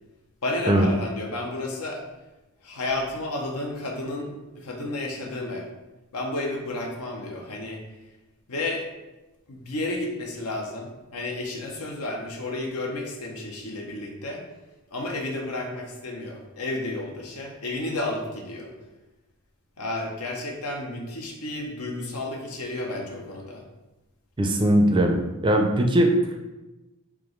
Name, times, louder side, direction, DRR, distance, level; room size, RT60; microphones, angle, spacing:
voice 1, 0.4-2.0 2.6-5.7 6.1-7.8 8.5-8.8 9.5-14.4 14.9-18.7 19.8-23.6, left 2 dB, 90° left, 1 dB, 0.8 m, -32 dB
voice 2, 24.4-26.1, right 1 dB, 20° right, 3 dB, 0.4 m, -20 dB
3.6 x 2.9 x 3.8 m, 1.1 s
head